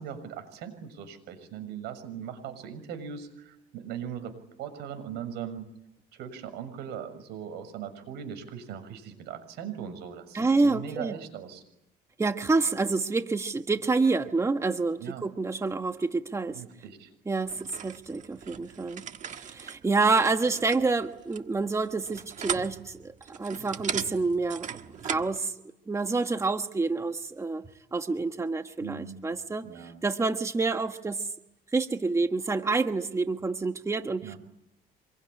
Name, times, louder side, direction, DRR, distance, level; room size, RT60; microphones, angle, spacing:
voice 1, 0.0-4.3 4.6-5.7 6.1-11.6 15.0-15.2 16.5-17.1 28.8-29.2 29.6-30.0 34.2-34.4, right 8 dB, 85° right, 10 dB, 6.6 m, -39 dB
voice 2, 10.3-11.2 12.2-16.6 17.2-24.7 25.0-25.5 25.9-27.6 27.9-31.3 31.7-34.3, right 3 dB, 15° right, 7 dB, 1.4 m, -28 dB
sound 1, 17.5-25.4, right 8 dB, 45° right, 1.6 m, -38 dB
27.0 x 22.5 x 9.8 m, 0.83 s
cardioid pair, 110°, 17 cm